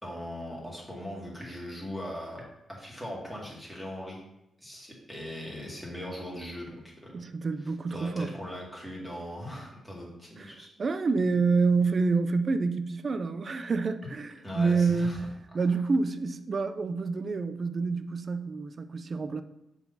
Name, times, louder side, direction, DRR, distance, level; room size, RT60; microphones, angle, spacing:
voice 1, 0.0-2.4 2.7-4.2 4.6-7.2 7.9-10.7 14.4-15.2 15.6-15.7, equal, ahead, 2.2 m, -40 dB
voice 2, 7.1-8.3 10.4-19.4, right 4 dB, 40° right, 0.5 m, -28 dB
7.1 x 4.0 x 5.4 m
cardioid pair, 125°, 0 cm